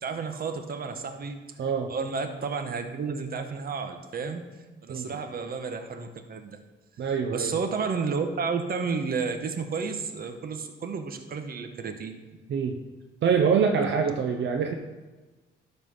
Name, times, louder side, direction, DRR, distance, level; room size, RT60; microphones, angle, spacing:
voice 1, 0.0-1.4 1.9-4.4 4.8-6.6 7.3-12.2, right 5 dB, 50° right, 7 dB, 1.1 m, -31 dB
voice 2, 1.6-1.9 4.9-5.1 7.0-7.6 12.5-12.8 13.2-14.7, right 6 dB, 65° right, 3 dB, 0.9 m, -25 dB
12.5 x 4.2 x 5.6 m, 1.2 s
cardioid pair, 90°, 20 cm